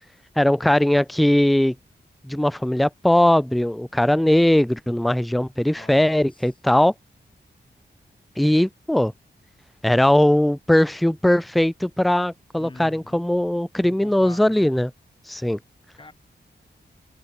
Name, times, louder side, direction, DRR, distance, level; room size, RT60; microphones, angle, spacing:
voice 1, 0.4-1.7 2.2-6.9 8.4-9.1 9.8-14.9 15.3-15.6, left 1 dB, ahead, 0.4 m, -19 dB
voice 2, 5.7-6.5 7.6-7.8 12.6-13.2 13.8-14.7 15.9-16.1, left 2 dB, 25° left, 6.8 m, -45 dB
wide cardioid pair, 130°, 18 cm